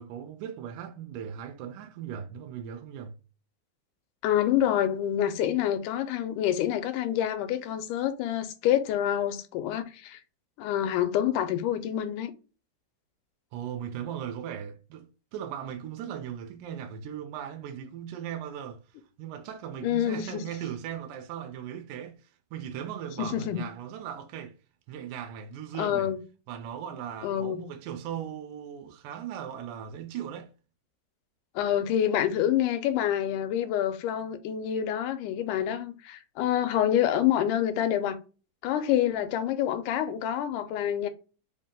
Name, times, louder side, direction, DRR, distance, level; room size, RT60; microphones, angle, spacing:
voice 1, 0.0-3.2 13.5-18.8 19.2-22.2 22.5-24.5 24.9-26.1 26.5-30.5, right 9 dB, 85° right, 2.2 m, -38 dB
voice 2, 4.2-10.2 10.6-12.3 19.8-20.4 23.2-23.7 25.8-26.2 27.2-27.6 31.6-38.2 38.6-41.1, left 10 dB, 90° left, 2.1 m, -27 dB
5.0 x 2.7 x 3.6 m
omnidirectional pair, 3.6 m